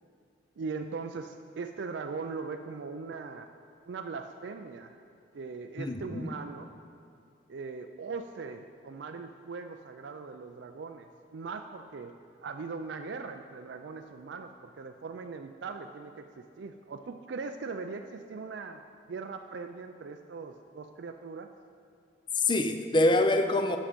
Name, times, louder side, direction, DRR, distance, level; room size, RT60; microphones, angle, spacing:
voice 1, 0.6-3.5 3.9-5.0 5.3-6.7 7.5-12.1 12.4-18.8 19.1-21.5, right 4 dB, 70° right, 6 dB, 0.4 m, -40 dB
voice 2, 5.8-6.3 22.4-23.8, left 2 dB, 25° left, 7 dB, 0.5 m, -25 dB
11.5 x 6.3 x 5.1 m, 2.5 s
head